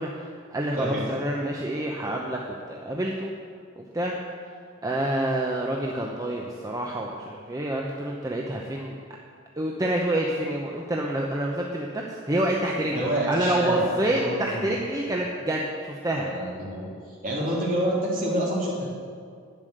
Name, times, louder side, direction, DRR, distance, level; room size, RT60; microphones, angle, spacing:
voice 1, 0.0-3.3 3.8-4.2 4.8-9.0 9.6-16.3, right 1 dB, 15° right, -1 dB, 0.8 m, -28 dB
voice 2, 0.7-1.1 12.9-14.7 16.2-16.9 17.2-18.9, right 1 dB, 40° right, -5 dB, 3.6 m, -27 dB
11.0 x 9.7 x 6.5 m, 2.1 s
head